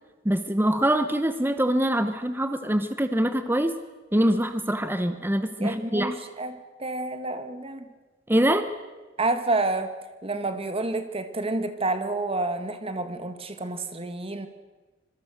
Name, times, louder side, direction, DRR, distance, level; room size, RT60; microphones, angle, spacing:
voice 1, 0.2-3.7 4.1-6.1 8.3-8.7, right 1 dB, 10° right, 9 dB, 1.0 m, -24 dB
voice 2, 5.6-7.9 9.2-9.9 10.2-14.5, right 2 dB, 30° right, 8 dB, 2.0 m, -29 dB
26.0 x 22.5 x 6.5 m, 1.2 s
head